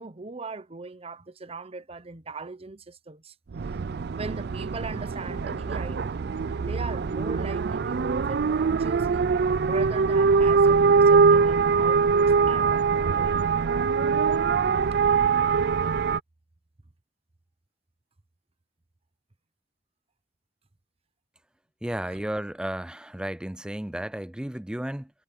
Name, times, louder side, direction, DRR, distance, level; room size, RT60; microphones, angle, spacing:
voice 1, 0.0-3.3 4.1-6.0 6.6-9.3 9.6-12.9 13.2-13.4, right 3 dB, 35° right, 1.0 m, -39 dB
sound 1, 3.5-16.2, right 5 dB, 60° right, 0.4 m, -23 dB
sound 2, 4.5-13.5, equal, 15° left, 2.8 m, -53 dB
voice 2, 21.8-25.1, right 1 dB, 5° right, 0.4 m, -33 dB
head